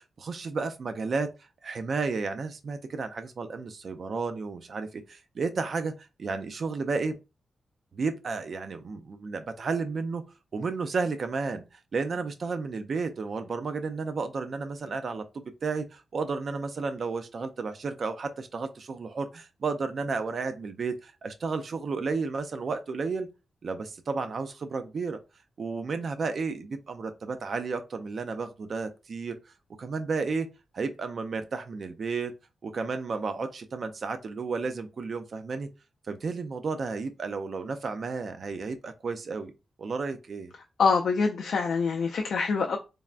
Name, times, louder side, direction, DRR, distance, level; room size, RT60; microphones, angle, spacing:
voice 1, 0.0-1.3 1.6-5.9 6.2-7.2 7.9-10.2 10.5-11.6 11.9-23.3 23.6-25.2 25.6-29.4 29.8-32.3 32.6-35.7 36.1-39.5 39.8-40.5, right 4 dB, 50° right, 0.4 m, -32 dB
voice 2, 40.8-42.8, left 5 dB, 75° left, 0.3 m, -25 dB
3.4 x 2.1 x 2.4 m
wide cardioid pair, 145°, 0 cm